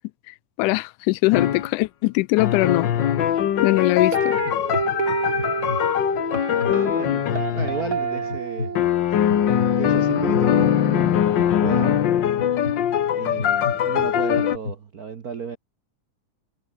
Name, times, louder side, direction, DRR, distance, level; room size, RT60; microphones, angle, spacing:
voice 1, 0.3-2.9 3.6-4.4, left 21 dB, 85° left, 2.1 m, -21 dB
sound 1, 1.3-1.7 2.4-8.3 8.8-14.6, left 10 dB, 65° left, 1.1 m, -22 dB
sound 2, 3.5-3.8 4.4-4.8 5.4-5.8 6.3-6.8 7.3-7.7 8.3-8.7 9.3-9.7 10.3-10.7 11.4-11.7 12.4-12.7 13.4-13.7 14.3-14.7, left 3 dB, 25° left, 3.6 m, -31 dB
sound 3, 4.1-11.2, right 5 dB, 40° right, 3.5 m, -30 dB
voice 2, 6.6-8.8 9.8-11.1 11.6-12.0 13.2-15.6, right 6 dB, 85° right, 0.8 m, -33 dB
omnidirectional pair, 3.6 m